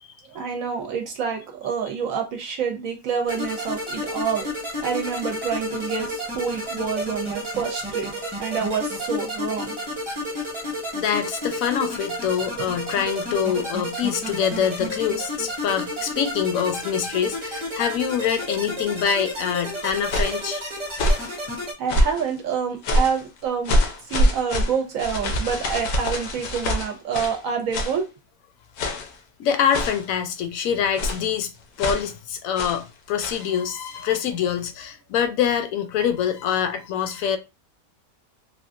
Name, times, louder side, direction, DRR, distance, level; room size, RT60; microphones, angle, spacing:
voice 1, 0.2-4.5 4.8-8.1 8.4-9.7 21.8-23.8 24.1-28.1, right 6 dB, 70° right, 0.9 m, -27 dB
sound 1, 3.3-21.7, left 1 dB, 25° right, 0.9 m, -31 dB
voice 2, 10.9-20.6 29.4-31.5 31.8-37.4, left 8 dB, 70° left, 0.9 m, -25 dB
sound 2, 19.8-20.4 20.9-21.3 21.9-22.3 22.8-23.2 23.7-27.4 27.7-28.0 28.8-29.2 29.7-30.1 31.0-31.3 31.8-32.1 32.6-32.8 33.2-33.5, equal, 90° left, 1.2 m, -24 dB
3.5 x 2.3 x 2.5 m
omnidirectional pair, 1.6 m